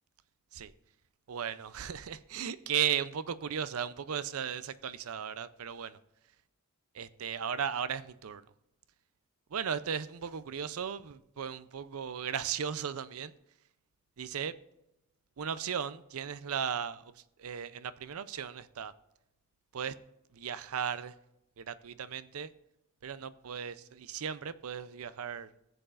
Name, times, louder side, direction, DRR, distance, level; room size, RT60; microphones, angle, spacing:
voice 1, 1.3-6.0 6.9-8.4 9.5-13.3 14.2-14.5 15.4-17.1 17.4-18.9 19.7-20.0 20.3-21.1 21.6-22.5 23.0-25.5, right 8 dB, 75° right, 15 dB, 0.5 m, -36 dB
15.0 x 7.9 x 2.5 m, 0.85 s
head